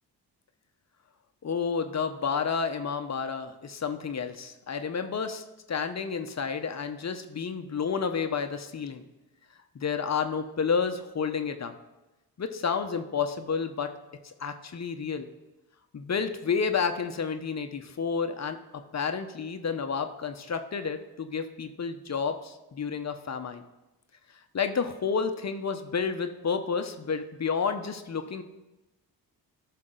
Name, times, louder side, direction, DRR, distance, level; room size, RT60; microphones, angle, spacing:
voice 1, 1.4-9.0 9.7-11.7 12.4-13.9 14.2-15.3 15.9-18.6 18.9-23.6 24.5-28.4, left 6 dB, 40° left, 8 dB, 0.9 m, -30 dB
13.5 x 5.7 x 3.9 m, 1.0 s
supercardioid pair, 55°, 42 cm